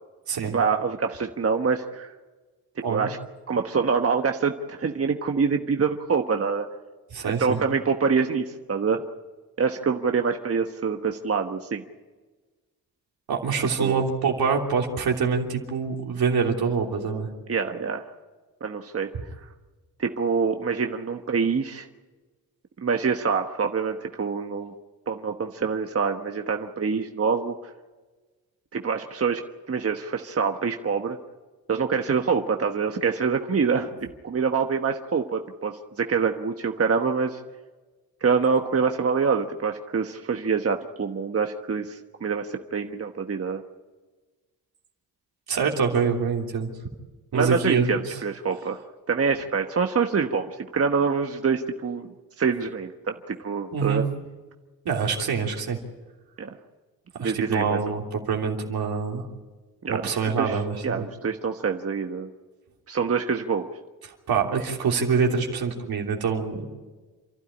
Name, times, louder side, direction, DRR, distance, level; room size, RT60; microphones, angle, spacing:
voice 1, 0.5-2.1 2.9-3.2 3.5-6.7 7.4-9.0 9.6-11.8 13.8-14.0 17.5-18.0 18.6-19.1 20.0-21.9 22.8-24.7 25.1-27.5 28.7-29.4 29.7-31.2 31.7-37.4 38.2-43.6 47.3-48.8 49.1-54.0 56.4-56.5 57.2-57.8 59.8-60.1 60.4-62.3 62.9-63.7, right 5 dB, 40° right, 5 dB, 1.3 m, -25 dB
voice 2, 7.1-7.6 13.3-17.3 33.8-33.9 45.5-46.7 47.3-48.2 53.7-54.0 54.8-55.8 57.1-59.3 59.9-61.0 64.3-66.7, right 5 dB, 75° right, 1 dB, 3.3 m, -25 dB
28.5 x 12.0 x 9.9 m, 1.3 s
cardioid pair, 65°, 37 cm